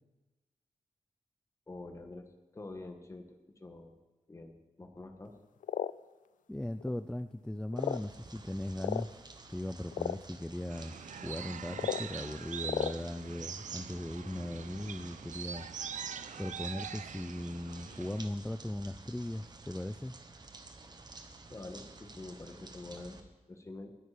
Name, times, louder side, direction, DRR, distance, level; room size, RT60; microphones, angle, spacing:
voice 1, 1.7-2.3 2.5-3.9 4.3-5.3 21.5-24.0, left 2 dB, 25° left, 5 dB, 1.4 m, -47 dB
sound 1, 5.6-5.9 6.8-6.9 7.7-8.1 8.8-9.0 9.9-10.2 11.7-12.0 12.6-12.9, left 10 dB, 85° left, 0.4 m, -33 dB
voice 2, 6.5-9.2 9.5-15.7 16.4-20.1, left 1 dB, 5° left, 10 dB, 0.3 m, -38 dB
sound 2, 7.8-23.2, right 3 dB, 30° right, 1.2 m, -52 dB
sound 3, 10.7-18.3, right 7 dB, 70° right, 0.7 m, -43 dB
20.5 x 9.1 x 5.0 m, 1.1 s
wide cardioid pair, 165°, 13 cm